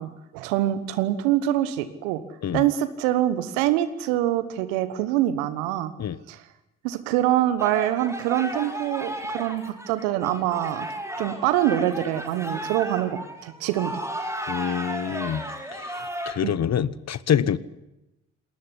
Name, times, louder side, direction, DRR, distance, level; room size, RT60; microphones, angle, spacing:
voice 1, 0.0-2.2 2.5-5.9 6.3-6.4 6.8-10.9 11.2-13.9 16.4-16.5, right 13 dB, 75° right, 13 dB, 1.4 m, -25 dB
sound 1, 7.6-16.3, right 1 dB, 5° right, 6.7 m, -34 dB
voice 2, 14.5-15.4 15.7-17.6, left 9 dB, 45° left, 18 dB, 1.2 m, -26 dB
20.5 x 18.5 x 9.8 m, 0.94 s
hypercardioid pair, 45°, 36 cm